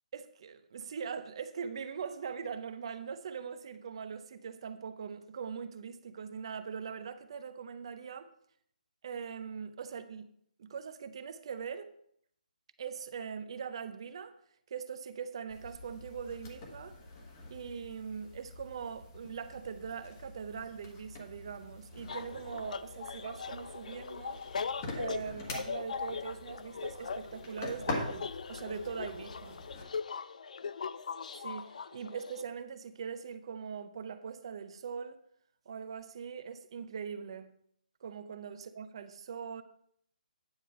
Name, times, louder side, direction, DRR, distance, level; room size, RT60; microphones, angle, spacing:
voice 1, 0.1-8.3 9.0-10.3 10.6-11.9 12.8-14.4 14.7-17.0 17.5-24.4 25.0-29.6 31.4-35.2 35.7-37.5 38.0-39.6, right 6 dB, 35° right, 0.5 m, -41 dB
sound 1, 15.5-29.8, left 2 dB, 25° left, 1.2 m, -45 dB
sound 2, 22.1-32.4, left 5 dB, 55° left, 0.4 m, -40 dB
9.5 x 5.0 x 5.4 m
hypercardioid pair, 170°, 5 cm